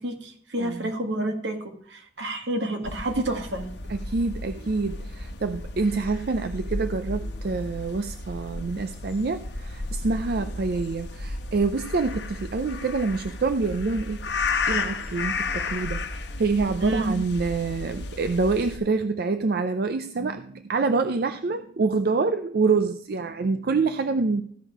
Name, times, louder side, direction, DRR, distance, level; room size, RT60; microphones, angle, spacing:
voice 1, 0.0-3.7 16.8-17.1, right 1 dB, 80° right, 4 dB, 1.8 m, -29 dB
voice 2, 0.6-0.9 3.9-14.2 14.7-24.4, right 4 dB, 60° right, 8 dB, 0.5 m, -26 dB
sound 1, 2.8-18.8, left 3 dB, 70° left, 1.0 m, -33 dB
14.5 x 5.5 x 4.7 m, 0.62 s
head